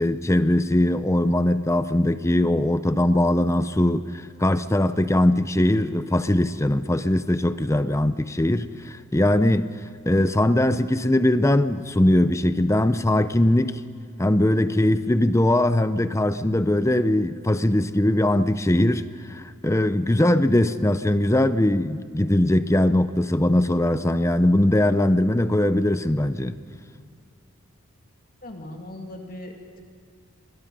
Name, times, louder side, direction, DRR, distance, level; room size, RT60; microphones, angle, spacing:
voice 1, 0.0-9.7 10.1-13.8 14.2-26.6, left 1 dB, 15° left, 0.6 m, -21 dB
voice 2, 28.4-29.8, left 1 dB, 40° left, 2.2 m, -39 dB
28.5 x 22.5 x 5.4 m
head